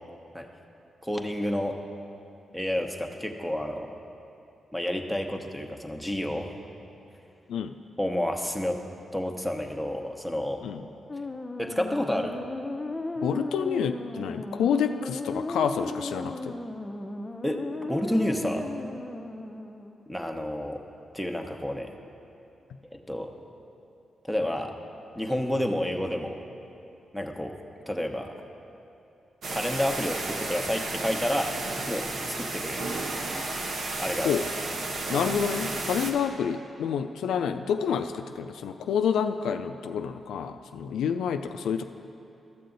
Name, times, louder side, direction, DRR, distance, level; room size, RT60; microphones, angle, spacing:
voice 1, 1.0-1.8 2.5-3.9 4.7-6.5 8.0-8.8 9.1-10.6 11.6-12.4 17.4-17.6 17.9-18.7 20.1-20.8 21.1-21.9 22.9-23.3 24.2-24.7 25.1-26.4 27.1-27.5 27.9-28.3 29.5-31.5 31.9-32.9 34.0-34.4, left 1 dB, ahead, 3 dB, 1.0 m, -30 dB
sound 1, 11.1-20.0, left 2 dB, 25° left, 0.6 m, -36 dB
voice 2, 13.2-16.6 34.2-34.4 35.1-41.8, left 7 dB, 85° left, 8 dB, 0.3 m, -28 dB
sound 2, 29.4-36.1, right 2 dB, 70° right, 1.0 m, -32 dB
13.5 x 6.7 x 3.9 m, 2.7 s
supercardioid pair, 55°, 0 cm